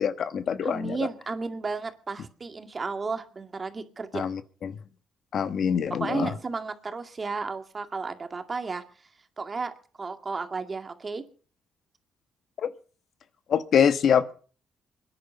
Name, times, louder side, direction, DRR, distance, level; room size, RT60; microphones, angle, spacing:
voice 1, 0.0-1.0 4.1-4.8 5.3-6.3 12.6-12.7 13.5-14.3, left 7 dB, 60° left, 12 dB, 1.2 m, -25 dB
voice 2, 0.6-4.3 5.9-8.8 9.4-11.2, right 4 dB, 30° right, 7 dB, 2.1 m, -33 dB
24.0 x 10.5 x 5.8 m, 0.42 s
cardioid pair, 90°, 0 cm